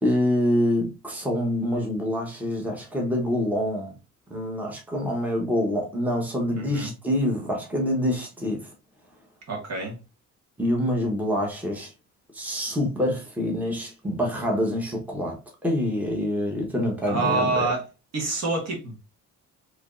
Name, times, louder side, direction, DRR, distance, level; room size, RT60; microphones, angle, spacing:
voice 1, 0.0-3.9 4.3-8.7 10.6-11.9 12.3-17.5, left 1 dB, 5° right, 1.0 m, -26 dB
voice 2, 6.5-6.9 9.5-10.0 17.1-17.8 18.1-19.0, right 3 dB, 60° right, 1.5 m, -27 dB
3.4 x 3.0 x 2.5 m
cardioid pair, 115°, 31 cm